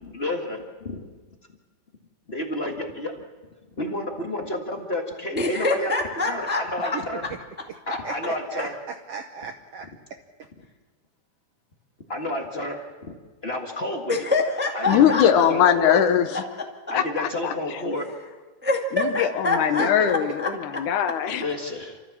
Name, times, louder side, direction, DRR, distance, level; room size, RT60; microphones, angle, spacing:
voice 1, 0.0-1.1 2.3-3.2 3.8-5.9 6.2-7.2 7.9-8.7 12.1-12.9 13.4-14.2 14.7-16.0 16.9-18.1 21.3-22.0, left 1 dB, 25° left, 2 dB, 1.3 m, -30 dB
voice 2, 5.3-7.0 14.1-16.0 16.3-16.4 18.6-20.5, left 2 dB, 5° right, 1 dB, 1.1 m, -26 dB
voice 3, 8.0-9.9 10.4-10.5 19.8-20.3, right 6 dB, 70° right, 5 dB, 1.5 m, -35 dB
voice 4, 14.9-16.4 16.9-17.8 18.9-21.4, left 9 dB, 75° left, 9 dB, 2.4 m, -21 dB
28.5 x 14.0 x 7.3 m, 1.3 s
omnidirectional pair, 3.7 m